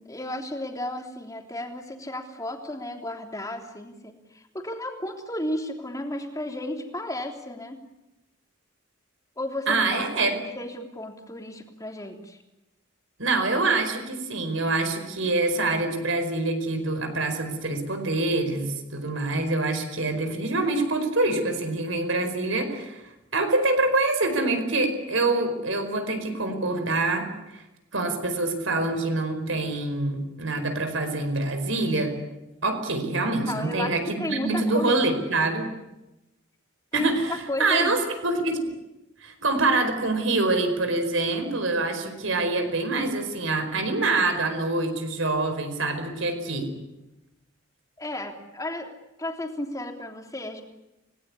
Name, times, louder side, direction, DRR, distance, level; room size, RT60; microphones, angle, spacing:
voice 1, 0.1-7.8 9.4-12.4 33.4-35.0 36.9-37.9 48.0-48.9 49.2-50.6, left 1 dB, 15° left, 3 dB, 3.3 m, -33 dB
voice 2, 9.7-10.3 13.2-23.0 23.3-27.3 27.5-27.6 27.9-32.1 32.6-35.7 36.9-38.7 39.2-46.7, right 2 dB, 70° right, 7 dB, 4.9 m, -25 dB
29.5 x 19.5 x 9.8 m, 0.98 s
head